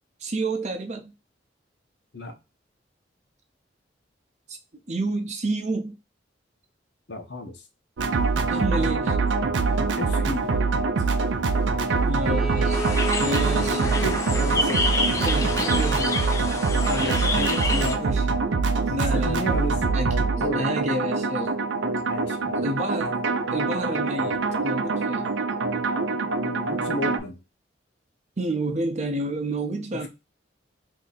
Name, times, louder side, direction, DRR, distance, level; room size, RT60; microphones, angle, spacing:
voice 1, 0.2-1.1 4.5-4.6 4.9-5.9 8.5-9.2 12.0-12.8 13.2-13.8 15.2-16.2 16.9-17.3 18.0-18.3 18.9-19.5 19.9-21.6 22.6-23.2 23.5-25.3 28.4-30.1, right 2 dB, 40° right, 0.6 m, -29 dB
voice 2, 7.1-7.6 10.0-10.5 13.2-15.8 16.7-18.1 18.9-19.8 20.4-20.7 22.1-22.7 26.4-27.4, left 1 dB, 65° left, 0.8 m, -33 dB
sound 1, 8.0-27.2, right 4 dB, 85° right, 0.4 m, -24 dB
Bowed string instrument, 12.2-16.5, right 1 dB, ahead, 0.8 m, -35 dB
sound 2, 12.7-18.0, left 3 dB, 15° left, 0.4 m, -28 dB
2.7 x 2.6 x 3.9 m
head